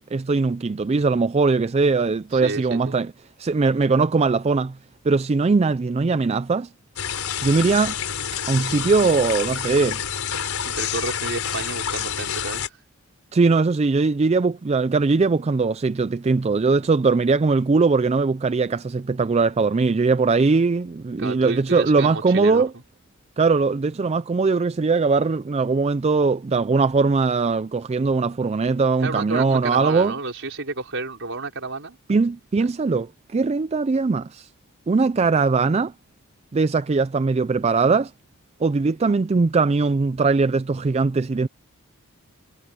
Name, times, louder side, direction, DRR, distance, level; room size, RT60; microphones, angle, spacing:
voice 1, 0.0-3.1 3.4-4.8 5.0-6.7 7.4-8.0 8.5-10.0 13.3-22.7 23.4-30.1 32.1-34.5 34.9-35.9 36.5-38.1 38.6-41.5, right 4 dB, 30° right, 0.3 m, -20 dB
voice 2, 2.3-2.9 10.7-12.7 21.2-22.6 29.0-32.0, right 3 dB, 55° right, 5.2 m, -30 dB
sound 1, 7.0-12.7, left 8 dB, 75° left, 4.3 m, -28 dB
head